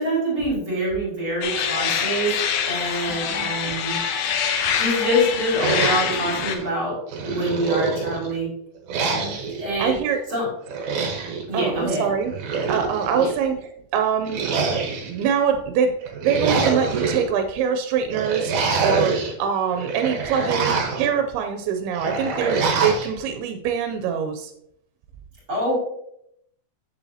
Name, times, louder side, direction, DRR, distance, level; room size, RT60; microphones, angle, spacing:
voice 1, 0.0-2.3 2.6-4.0 4.8-7.0 7.2-8.5 9.6-9.9 10.3-10.5 11.5-12.1 13.1-13.3 25.5-25.7, equal, 35° right, -5 dB, 3.3 m, -25 dB
sound 1, 1.4-6.6, left 7 dB, 80° left, 2.5 m, -25 dB
sound 2, 5.6-6.7 7.1-8.3 8.9-9.6 10.7-11.4 12.2-13.2 14.3-15.3 16.0-17.2 18.1-19.3 19.7-21.1 22.0-23.1, right 4 dB, 65° right, 2.4 m, -25 dB
voice 2, 9.8-10.2 11.5-12.3 12.7-13.6 13.9-14.4 14.7-24.5, right 7 dB, 90° right, 5 dB, 2.6 m, -24 dB
8.5 x 6.9 x 2.8 m, 0.74 s
omnidirectional pair, 4.4 m